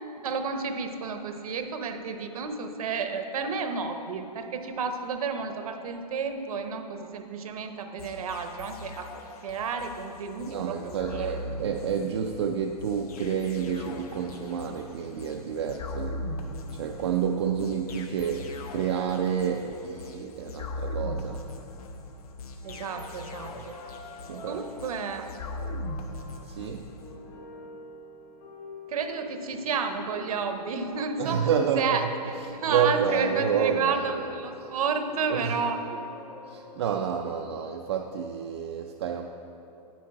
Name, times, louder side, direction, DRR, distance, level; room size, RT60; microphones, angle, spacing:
voice 1, 0.2-9.1 9.4-11.4 22.6-23.7 24.5-25.3 28.9-31.5 31.8-36.0, right 5 dB, 60° right, 7 dB, 0.8 m, -31 dB
sound 1, 8.0-27.2, left 1 dB, 65° left, 1.0 m, -40 dB
voice 2, 10.4-16.1 16.7-21.4 24.3-24.6 26.5-26.9 31.2-32.1 32.6-34.2 35.3-35.5 36.5-39.3, right 7 dB, 40° right, 3 dB, 0.4 m, -29 dB
sound 2, 22.6-37.4, left 2 dB, 40° left, 2.4 m, -46 dB
9.2 x 8.6 x 4.7 m, 2.9 s
hypercardioid pair, 170°, 21 cm